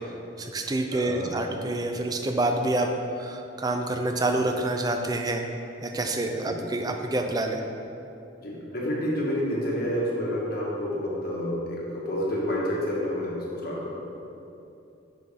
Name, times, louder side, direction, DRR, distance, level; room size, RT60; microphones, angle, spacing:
voice 1, 0.4-5.4 5.8-7.6, right 2 dB, 20° right, 4 dB, 0.4 m, -27 dB
voice 2, 0.9-1.3 6.4-6.6 8.4-13.9, equal, 50° left, -5 dB, 1.5 m, -29 dB
6.8 x 6.0 x 3.6 m, 2.8 s
head